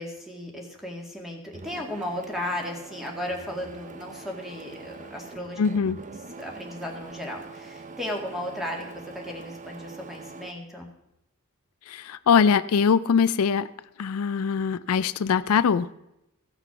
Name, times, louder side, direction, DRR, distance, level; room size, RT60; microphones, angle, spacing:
voice 1, 0.0-5.6 6.4-10.9, left 1 dB, ahead, 0 dB, 2.0 m, -35 dB
Printer, 1.5-10.5, right 4 dB, 35° right, 0.7 m, -43 dB
voice 2, 5.6-6.0 11.9-13.7 14.0-15.9, left 6 dB, 80° left, 15 dB, 0.4 m, -22 dB
15.5 x 5.9 x 5.9 m, 0.86 s
head